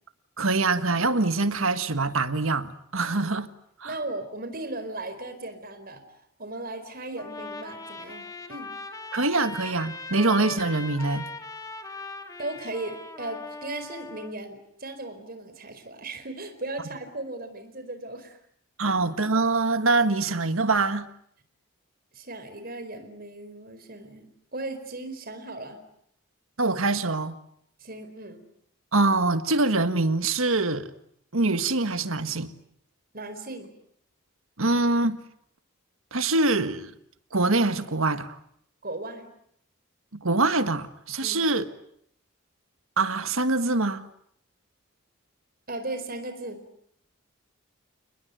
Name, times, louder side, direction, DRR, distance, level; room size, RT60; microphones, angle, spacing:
voice 1, 0.4-3.5 3.8-3.9 9.1-11.3 18.8-21.1 26.6-27.4 28.9-30.9 31.3-32.5 34.6-35.2 36.1-36.9 37.3-38.3 40.2-41.6 43.0-44.0, right 3 dB, 70° right, 1.7 m, -24 dB
voice 2, 3.8-6.0 6.4-8.7 12.4-18.4 18.8-19.0 22.1-25.8 27.8-28.4 33.1-33.7 38.8-39.3 41.2-41.4 45.7-46.6, right 2 dB, 45° right, 4.6 m, -37 dB
Trumpet, 7.2-14.3, left 3 dB, 15° left, 2.3 m, -39 dB
29.5 x 20.5 x 9.3 m
head